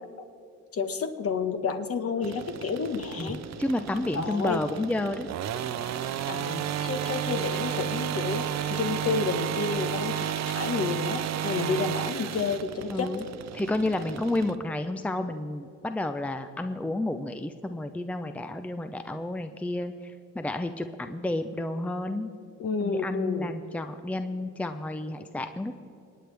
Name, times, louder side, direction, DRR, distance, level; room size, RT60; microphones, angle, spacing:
voice 1, 0.7-3.4 4.1-4.6 6.3-13.1 22.6-23.5, left 5 dB, 50° left, 7 dB, 1.3 m, -30 dB
sound 1, 2.2-14.5, right 9 dB, 60° right, 0.7 m, -32 dB
voice 2, 3.2-5.3 12.9-13.2 13.5-19.9 20.3-22.3 22.8-25.8, left 1 dB, 5° left, 8 dB, 0.6 m, -31 dB
27.0 x 9.2 x 3.4 m, 2.6 s
cardioid pair, 90°, 30 cm